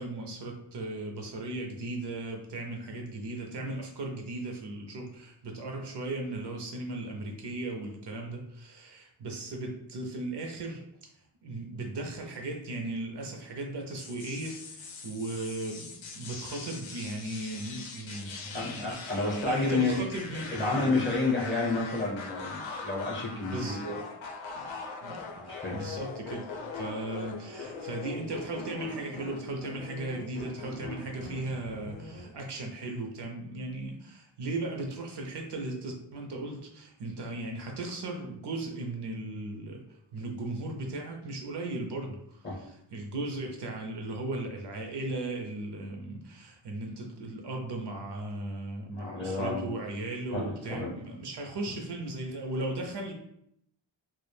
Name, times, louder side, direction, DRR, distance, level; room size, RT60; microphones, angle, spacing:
voice 1, 0.0-11.1 11.4-20.8 23.4-23.9 24.5-39.9 40.1-53.1, right 2 dB, 60° right, 2 dB, 0.5 m, -37 dB
sound 1, 14.0-32.4, left 4 dB, 70° left, 0.6 m, -41 dB
voice 2, 18.5-20.0 20.5-24.0 25.3-25.8 42.4-42.6 48.9-49.7 50.3-50.9, left 3 dB, 25° left, -4 dB, 0.6 m, -30 dB
2.3 x 2.1 x 3.1 m, 0.74 s
wide cardioid pair, 140°, 48 cm